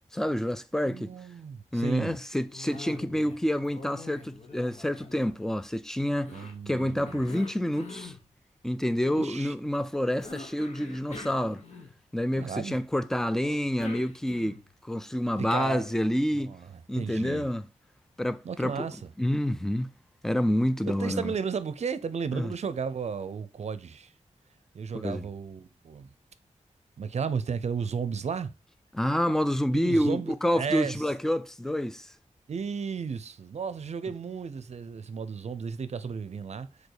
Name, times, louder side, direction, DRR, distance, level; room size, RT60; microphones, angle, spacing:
voice 1, 0.1-1.1 1.7-8.2 8.6-11.6 12.1-16.5 16.9-17.6 18.2-18.9 19.2-19.9 20.2-21.3 22.3-22.5 24.9-25.3 28.9-32.1, equal, 5° left, 0.4 m, -28 dB
voice 2, 0.8-2.2 6.3-7.2 9.1-9.5 12.4-12.7 15.4-15.9 16.3-16.7 16.9-17.5 18.4-19.0 20.8-24.1 24.7-26.1 27.0-28.5 29.7-31.0 32.5-36.7, right 6 dB, 60° right, 0.6 m, -34 dB
Cough, 2.5-3.4 3.6-5.7 6.2-8.2 10.2-12.2 13.4-14.7, left 3 dB, 65° left, 1.4 m, -44 dB
5.2 x 4.1 x 4.8 m
wide cardioid pair, 150°, 13 cm